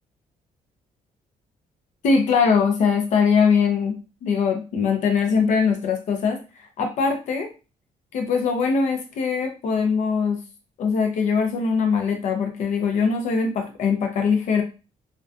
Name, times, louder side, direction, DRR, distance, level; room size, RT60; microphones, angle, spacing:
voice 1, 2.0-4.0 4.2-6.4 6.8-7.5 8.1-10.4 10.8-14.6, left 5 dB, 55° left, 4 dB, 0.5 m, -21 dB
2.5 x 2.2 x 2.3 m, 0.31 s
cardioid pair, 180°, 15 cm